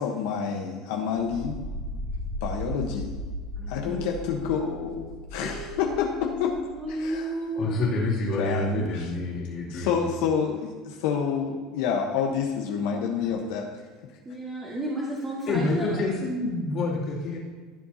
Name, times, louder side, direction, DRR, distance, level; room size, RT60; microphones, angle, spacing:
voice 1, 0.0-1.6 2.4-3.2 3.7-6.5 6.9-7.3 8.4-9.1 9.7-13.7, left 7 dB, 80° left, 1 dB, 1.1 m, -28 dB
sound 1, 1.1-7.2, equal, 90° right, 2.7 m, -36 dB
voice 2, 3.6-4.1 5.4-6.0 6.7-8.2 14.2-16.0, right 1 dB, 15° right, -5 dB, 1.9 m, -33 dB
voice 3, 7.5-10.1 15.5-17.4, left 2 dB, 45° left, -4 dB, 2.8 m, -27 dB
15.5 x 7.6 x 2.8 m, 1.5 s
cardioid pair, 145°, 0 cm